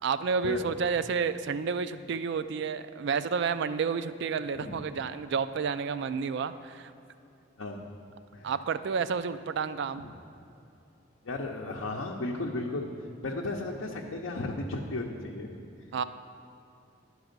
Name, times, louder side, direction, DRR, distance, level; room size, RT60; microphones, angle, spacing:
voice 1, 0.0-6.9 8.4-10.0 15.9-16.0, right 5 dB, 60° right, 13 dB, 0.4 m, -30 dB
voice 2, 11.2-12.9 13.2-15.5, left 2 dB, 80° left, -1 dB, 0.6 m, -34 dB
11.0 x 4.7 x 6.5 m, 2.7 s
head